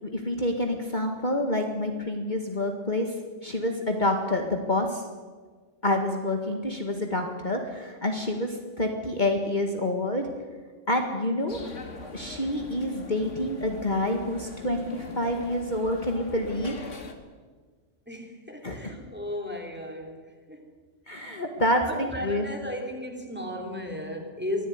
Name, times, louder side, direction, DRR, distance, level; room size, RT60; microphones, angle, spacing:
voice 1, 0.0-3.2 3.4-5.0 5.8-10.2 10.9-11.6 12.1-16.8 18.6-18.9 21.1-22.5, left 1 dB, 40° left, 3 dB, 2.0 m, -28 dB
sound 1, 11.5-17.1, left 3 dB, 75° left, 2.4 m, -41 dB
voice 2, 18.1-20.6 21.2-21.3 21.8-24.7, left 1 dB, 10° right, 2 dB, 3.4 m, -35 dB
24.0 x 15.0 x 9.6 m, 1.5 s
omnidirectional pair, 1.3 m